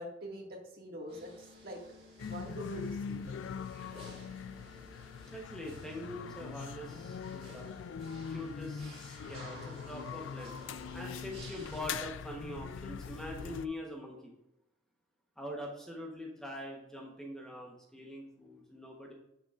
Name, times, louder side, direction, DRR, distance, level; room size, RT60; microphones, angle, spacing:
voice 1, 0.0-1.8 2.2-3.4, equal, 50° right, -1 dB, 1.9 m, -44 dB
sound 1, 1.1-11.8, left 1 dB, 35° right, 2.8 m, -54 dB
sound 2, 2.2-13.7, left 6 dB, 80° left, 0.4 m, -42 dB
voice 2, 5.2-7.7 8.3-10.6 10.9-14.3 15.4-19.1, left 1 dB, 5° left, -1 dB, 1.0 m, -43 dB
9.4 x 6.6 x 2.5 m, 0.87 s
head